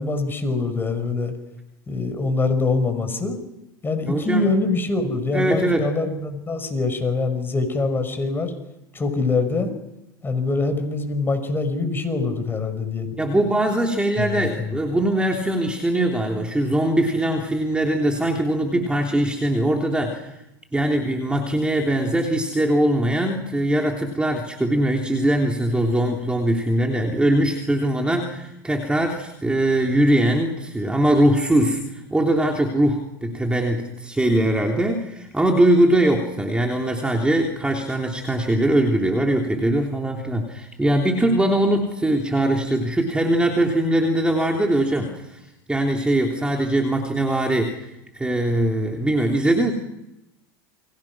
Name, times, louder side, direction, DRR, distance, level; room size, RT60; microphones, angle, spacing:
voice 1, 0.0-1.3 1.9-3.4 3.8-8.5 8.9-9.7 10.2-13.1 14.2-14.8, left 3 dB, 20° left, 8 dB, 5.6 m, -24 dB
voice 2, 4.1-4.5 5.3-5.9 13.2-20.3 20.7-31.8 32.1-45.4 45.7-47.8 48.1-49.7, right 1 dB, 10° right, 1 dB, 3.2 m, -21 dB
29.5 x 23.5 x 6.1 m, 0.90 s
supercardioid pair, 115°, 12 cm